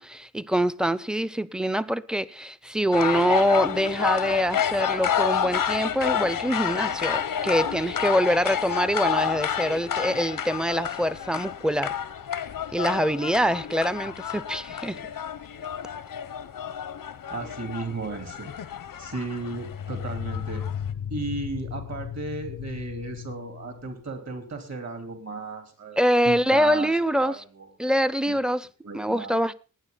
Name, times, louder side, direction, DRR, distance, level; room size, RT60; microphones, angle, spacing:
voice 1, 0.0-11.9 12.7-15.0 26.0-27.4 27.8-28.7 28.9-29.6, equal, ahead, 0.6 m, -24 dB
sound 1, 2.9-20.9, left 8 dB, 90° left, 0.8 m, -30 dB
sound 2, 14.1-14.2 19.5-24.0, left 9 dB, 70° left, 0.5 m, -35 dB
voice 2, 17.3-18.5 19.0-20.6 21.1-26.0 26.3-27.7 28.3-28.4 28.8-29.4, right 3 dB, 55° right, 3.6 m, -35 dB
19.0 x 9.7 x 4.0 m
wide cardioid pair, 100°, 33 cm